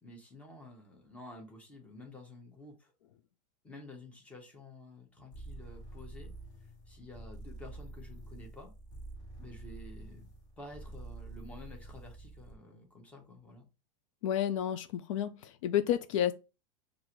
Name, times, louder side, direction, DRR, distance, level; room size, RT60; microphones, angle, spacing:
voice 1, 0.0-2.9 3.6-6.3 6.6-8.7 9.4-10.3 10.6-13.7, left 2 dB, 5° left, 0.9 m, -51 dB
sound 1, 5.3-12.6, right 2 dB, 35° left, 1.5 m, -47 dB
voice 2, 14.2-16.3, left 10 dB, 65° left, 0.4 m, -30 dB
6.2 x 2.5 x 3.0 m
supercardioid pair, 160°, 18 cm